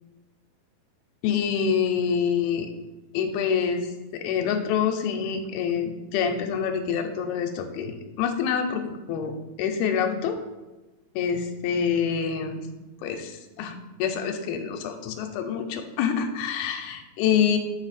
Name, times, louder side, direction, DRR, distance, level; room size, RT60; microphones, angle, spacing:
voice 1, 1.2-2.7 3.1-3.9 4.1-8.8 9.1-9.3 9.6-10.4 11.2-12.7 13.0-17.6, left 7 dB, 90° left, 6 dB, 2.5 m, -26 dB
5.2 x 5.0 x 4.1 m, 1.2 s
omnidirectional pair, 4.3 m